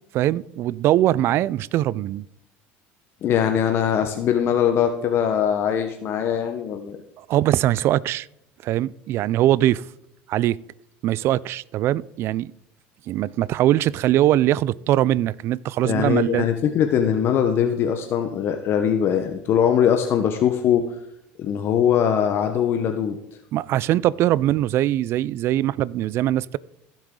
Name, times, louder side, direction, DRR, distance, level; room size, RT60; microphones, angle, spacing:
voice 1, 0.1-2.2 7.2-8.3 8.6-9.8 10.3-10.6 11.0-12.5 13.1-16.5 23.5-26.6, right 13 dB, 50° right, 0.3 m, -21 dB
voice 2, 3.2-7.0 15.8-20.8 21.4-23.2, left 8 dB, 50° left, 0.9 m, -21 dB
15.0 x 7.3 x 3.7 m
supercardioid pair, 115°, 5 cm